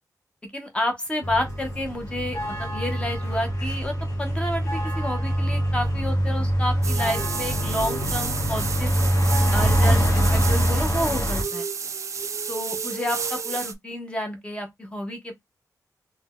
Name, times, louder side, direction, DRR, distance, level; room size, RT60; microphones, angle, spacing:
voice 1, 0.5-3.9 4.2-9.0 9.5-11.7 12.5-15.3, left 1 dB, 15° left, 0.8 m, -30 dB
sound 1, 1.2-11.4, equal, 45° left, 1.0 m, -24 dB
sound 2, 6.8-13.7, right 6 dB, 50° right, 0.4 m, -31 dB
2.6 x 2.1 x 3.6 m
wide cardioid pair, 120°, 7 cm